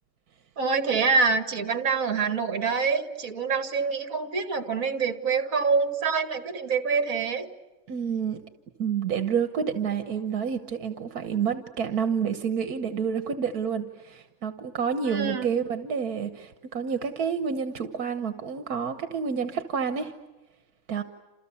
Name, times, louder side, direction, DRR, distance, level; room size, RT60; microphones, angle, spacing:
voice 1, 0.6-7.5 15.1-15.5, right 5 dB, 65° right, 9 dB, 2.4 m, -26 dB
voice 2, 7.9-8.4 8.8-20.1 20.9-21.0, right 7 dB, 80° right, 8 dB, 1.7 m, -29 dB
29.5 x 28.0 x 7.1 m, 1.2 s
omnidirectional pair, 1.6 m